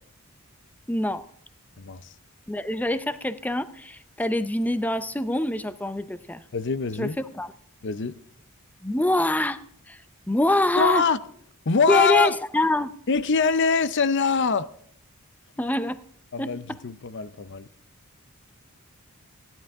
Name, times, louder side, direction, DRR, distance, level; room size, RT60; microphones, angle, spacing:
voice 1, 0.9-1.2 2.5-6.4 7.0-7.5 8.8-9.6 9.9-10.0 10.3-11.1 11.9-12.9 15.6-16.0 16.4-16.8, left 1 dB, 5° left, 0.5 m, -25 dB
voice 2, 6.5-7.1 7.8-8.2 10.8-11.2 11.7-12.3 13.1-14.7 16.3-17.7, left 5 dB, 55° left, 0.6 m, -23 dB
15.5 x 11.0 x 3.5 m
head